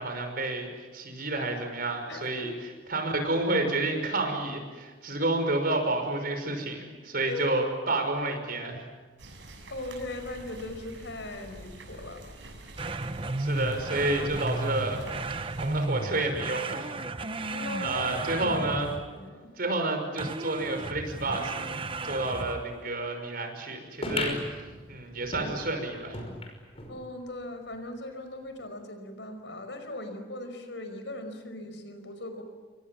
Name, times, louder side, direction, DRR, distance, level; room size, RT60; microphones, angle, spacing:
voice 1, 0.0-2.5 2.9-8.8 13.4-15.0 15.3-16.9 17.4-17.5 17.8-18.9 19.6-21.7 22.0-24.4 24.9-26.2, right 2 dB, 55° right, 5 dB, 6.0 m, -30 dB
voice 2, 2.1-2.5 5.2-5.3 7.2-7.6 9.7-12.2 17.5-19.5 26.9-32.4, left 2 dB, 80° left, 7 dB, 5.2 m, -39 dB
sound 1, 9.2-15.9, right 2 dB, 85° right, 6.8 m, -46 dB
sound 2, 12.8-19.2 20.2-22.8, right 2 dB, 30° right, 0.9 m, -34 dB
sound 3, 24.0-27.0 27.4-27.5 27.7-27.8 28.6-28.7, left 2 dB, 35° left, 5.6 m, -36 dB
29.0 x 24.0 x 7.4 m, 1.3 s
head